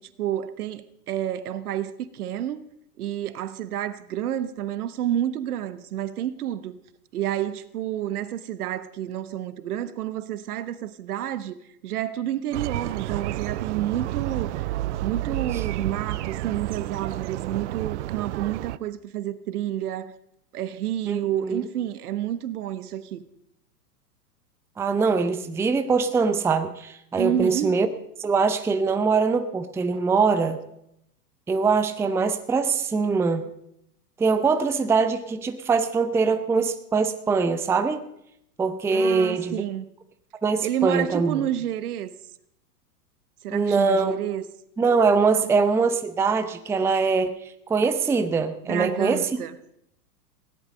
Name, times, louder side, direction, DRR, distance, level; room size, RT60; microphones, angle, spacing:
voice 1, 0.2-2.6 3.0-6.8 7.1-11.6 11.8-14.7 15.0-20.1 20.5-23.2 27.2-27.8 29.9-30.0 38.9-39.8 40.6-42.1 43.4-44.4 48.7-49.5, right 11 dB, 65° right, 1.2 m, -29 dB
sound 1, 12.5-18.8, right 15 dB, 50° right, 0.5 m, -30 dB
voice 2, 21.1-21.6 24.8-27.9 28.2-30.6 31.5-33.5 34.2-38.1 38.6-39.6 40.4-41.5 43.5-44.2 44.8-47.4 47.7-49.3, right 4 dB, 5° right, 0.6 m, -23 dB
17.0 x 11.0 x 5.2 m
hypercardioid pair, 110°, 48 cm